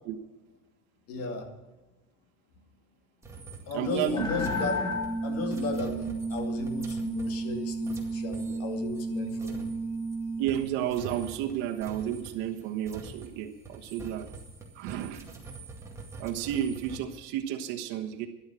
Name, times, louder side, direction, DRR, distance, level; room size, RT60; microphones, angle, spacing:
voice 1, 1.1-1.5 3.7-4.8 5.2-9.7, left 4 dB, 50° left, 4 dB, 2.4 m, -35 dB
sound 1, 3.2-10.2 10.5-17.0, right 3 dB, 10° right, 2.1 m, -46 dB
voice 2, 3.7-4.3 10.4-14.3 14.7-15.3 16.2-18.3, right 10 dB, 75° right, 1 dB, 1.3 m, -32 dB
sound 2, 4.2-10.5, right 2 dB, 15° left, 1.3 m, -32 dB
13.0 x 11.5 x 6.3 m, 1.1 s
cardioid pair, 170°, 31 cm